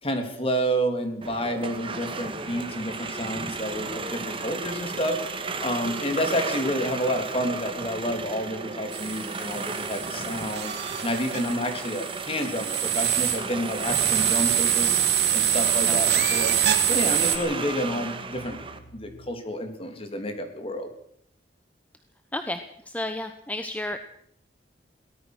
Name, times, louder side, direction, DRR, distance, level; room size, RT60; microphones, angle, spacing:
voice 1, 0.0-5.2 5.6-15.0 15.3-16.6 16.8-18.6 18.9-20.9, equal, 35° left, 6 dB, 3.4 m, -29 dB
sound 1, 1.2-18.8, right 3 dB, 30° right, 2.0 m, -34 dB
sound 2, 8.9-17.4, right 9 dB, 70° right, 3.0 m, -25 dB
sound 3, 12.9-19.4, equal, 70° left, 7.5 m, -48 dB
voice 2, 15.9-16.2 22.3-24.0, left 1 dB, 10° left, 8 dB, 1.1 m, -32 dB
23.0 x 18.0 x 6.3 m, 0.67 s
head